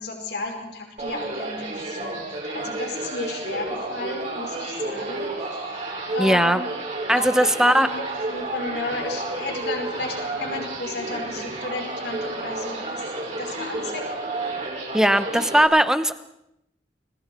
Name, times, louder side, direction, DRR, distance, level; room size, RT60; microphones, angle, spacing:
voice 1, 0.0-6.6 7.2-13.0 13.4-14.0, left 2 dB, 65° left, 2 dB, 5.3 m, -33 dB
sound 1, 1.0-15.6, right 2 dB, 45° right, 6.5 m, -31 dB
voice 2, 6.2-6.6 7.1-7.9 14.9-16.2, right 1 dB, 5° right, 11 dB, 1.1 m, -19 dB
29.5 x 23.0 x 4.6 m, 0.81 s
head